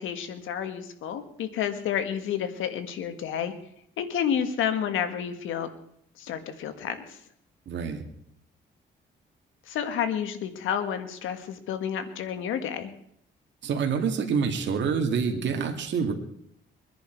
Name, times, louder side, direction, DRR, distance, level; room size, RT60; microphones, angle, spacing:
voice 1, 0.0-3.5 4.0-5.7 6.2-7.2 9.7-12.9, left 8 dB, 85° left, 9 dB, 1.7 m, -30 dB
voice 2, 7.7-8.0 13.6-16.1, right 6 dB, 65° right, 4 dB, 2.3 m, -27 dB
23.5 x 10.5 x 4.6 m, 0.70 s
cardioid pair, 90°, 20 cm